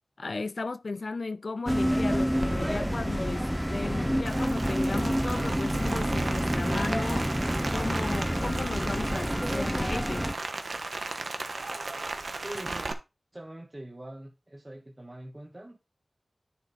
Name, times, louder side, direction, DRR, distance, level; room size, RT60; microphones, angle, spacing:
voice 1, 0.2-7.3 7.7-10.3, left 3 dB, 75° left, 0.5 m, -35 dB
sound 1, 1.7-10.3, equal, 5° right, 0.4 m, -28 dB
sound 2, 2.4-4.0 4.6-6.2 6.8-6.9 7.1-8.7 9.5-11.4 12.1-12.2, left 1 dB, 25° left, 1.2 m, -46 dB
Rain, 4.3-12.9, right 3 dB, 80° right, 1.0 m, -36 dB
voice 2, 12.4-12.9 13.3-15.8, right 1 dB, 30° right, 1.4 m, -43 dB
10.0 x 5.2 x 4.1 m
wide cardioid pair, 65°, 0 cm